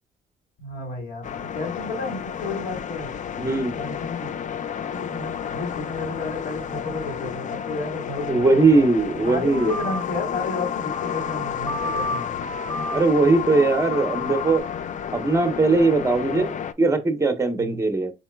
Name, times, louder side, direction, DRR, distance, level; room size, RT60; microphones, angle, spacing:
voice 1, 0.6-3.1 3.8-4.3 4.9-8.9 9.2-12.3 17.6-17.8, left 3 dB, 75° left, 2.7 m, -32 dB
sound 1, 1.2-16.7, left 8 dB, 40° left, 0.4 m, -32 dB
voice 2, 3.4-3.8 8.3-9.7 12.9-14.7 15.1-18.1, right 3 dB, 15° right, 0.8 m, -20 dB
sound 2, 9.5-14.6, left 5 dB, 20° left, 0.7 m, -30 dB
4.2 x 3.9 x 2.2 m
cardioid pair, 90°, 20 cm